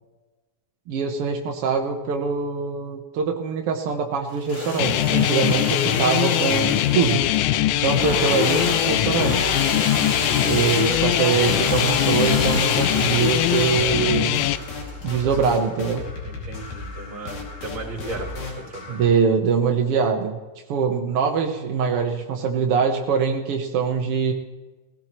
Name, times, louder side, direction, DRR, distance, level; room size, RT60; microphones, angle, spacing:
voice 1, 0.9-7.3 7.8-9.5 10.4-14.4 15.0-16.1 18.9-20.4 20.7-24.3, right 6 dB, 75° right, 3 dB, 1.3 m, -23 dB
Engine / Sawing, 4.3-16.0, left 2 dB, 35° left, 2.6 m, -30 dB
sound 1, 4.8-14.6, left 14 dB, 85° left, 1.8 m, -22 dB
sound 2, 7.0-19.1, left 3 dB, 65° left, 3.9 m, -35 dB
voice 2, 16.2-19.0, right 2 dB, 25° right, 0 dB, 4.1 m, -36 dB
19.5 x 16.5 x 3.1 m, 1.2 s
omnidirectional pair, 4.1 m